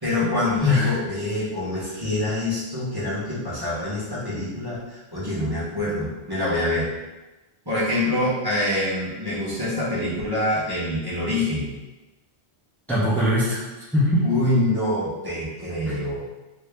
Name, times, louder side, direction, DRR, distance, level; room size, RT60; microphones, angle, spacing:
voice 1, 0.0-6.9 7.7-11.7 14.2-16.2, left 1 dB, 20° right, -10 dB, 1.0 m, -25 dB
voice 2, 0.6-1.0 12.9-13.6 13.9-14.3 15.9-16.0, left 1 dB, ahead, -10 dB, 0.7 m, -21 dB
2.8 x 2.7 x 3.4 m, 1.1 s
omnidirectional pair, 1.1 m